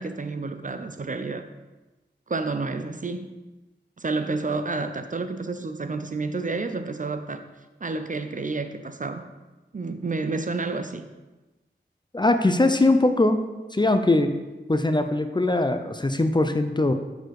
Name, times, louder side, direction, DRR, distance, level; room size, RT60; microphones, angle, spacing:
voice 1, 0.0-1.4 2.3-3.3 4.0-7.4 7.8-9.2 9.7-11.0, right 3 dB, 45° right, 8 dB, 0.5 m, -30 dB
voice 2, 12.1-13.4 13.7-14.4 14.7-16.9, left 2 dB, 25° left, 8 dB, 0.5 m, -21 dB
6.7 x 4.3 x 4.7 m, 1.1 s
wide cardioid pair, 60°, 19 cm